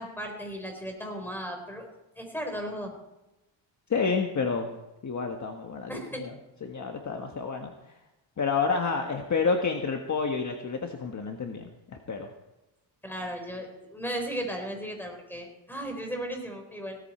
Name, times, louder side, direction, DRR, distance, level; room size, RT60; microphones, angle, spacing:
voice 1, 0.0-1.9 2.2-2.9 5.9-6.2 13.0-17.0, equal, 5° left, 3 dB, 4.2 m, -36 dB
voice 2, 3.9-4.7 5.0-6.3 6.6-7.9 8.4-12.3, left 5 dB, 35° left, 3 dB, 1.5 m, -29 dB
17.5 x 14.0 x 4.4 m, 0.95 s
cardioid pair, 115°, 48 cm